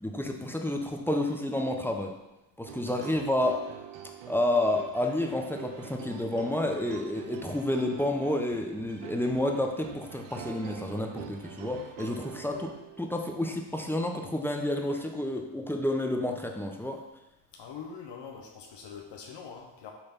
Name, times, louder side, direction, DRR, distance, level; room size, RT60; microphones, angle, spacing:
voice 1, 0.0-2.1 2.6-3.6 4.3-17.0, left 1 dB, 5° left, 2 dB, 1.0 m, -30 dB
sound 1, 2.7-13.1, right 8 dB, 75° right, 0.9 m, -45 dB
voice 2, 17.5-19.9, left 6 dB, 60° left, 2 dB, 1.1 m, -43 dB
7.1 x 3.4 x 5.8 m, 0.97 s
supercardioid pair, 70°, 49 cm